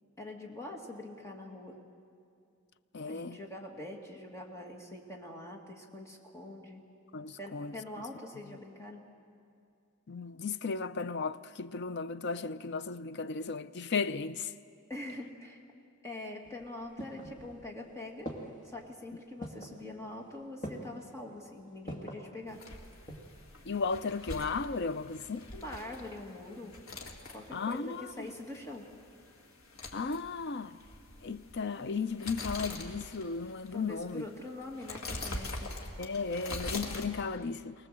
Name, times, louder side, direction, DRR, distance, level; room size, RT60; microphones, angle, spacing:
voice 1, 0.2-1.8 3.1-6.8 7.4-9.0 14.9-15.6 16.0-18.3 18.6-22.6 25.5-26.7 27.3-28.9 33.7-35.7, left 2 dB, 15° left, 2.1 m, -44 dB
voice 2, 2.9-3.4 7.1-7.7 10.1-14.5 23.7-25.5 27.5-28.3 29.9-30.8 31.2-34.2 36.0-37.7, left 4 dB, 50° left, 0.5 m, -35 dB
sound 1, 16.4-17.8 18.3-18.8 19.4-19.8 20.6-21.1 21.9-22.3 22.8-23.4 23.7-23.8, equal, 35° left, 2.2 m, -42 dB
sound 2, 22.5-37.1, left 2 dB, 70° left, 2.1 m, -44 dB
24.0 x 18.5 x 7.6 m
head